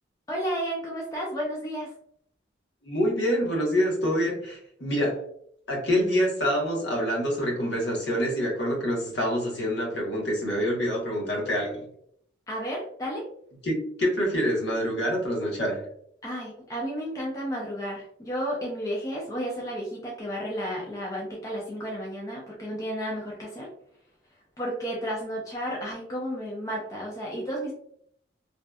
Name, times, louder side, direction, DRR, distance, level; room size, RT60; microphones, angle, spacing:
voice 1, 0.3-1.9 12.5-13.3 16.2-23.7 24.6-27.7, equal, 15° left, -3 dB, 0.4 m, -32 dB
voice 2, 2.8-5.2 5.7-11.8 13.6-15.9, equal, 65° left, -2 dB, 0.9 m, -26 dB
2.6 x 2.1 x 2.2 m, 0.66 s
head